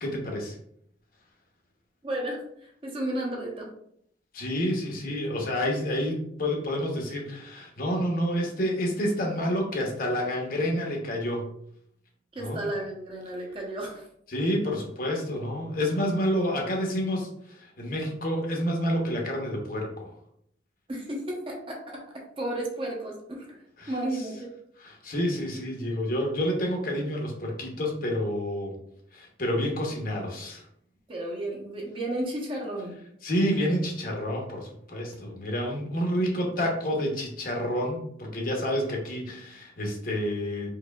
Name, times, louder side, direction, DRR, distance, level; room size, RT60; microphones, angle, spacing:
voice 1, 0.0-0.6 4.3-11.5 12.4-12.6 14.3-20.1 23.8-24.2 24.8-28.8 29.1-30.6 33.2-40.7, equal, 50° left, 1 dB, 0.8 m, -29 dB
voice 2, 2.0-3.7 12.3-14.1 20.9-22.0 22.4-24.5 31.1-32.9, right 1 dB, 30° right, -2 dB, 0.8 m, -33 dB
4.7 x 2.7 x 2.3 m, 0.70 s
head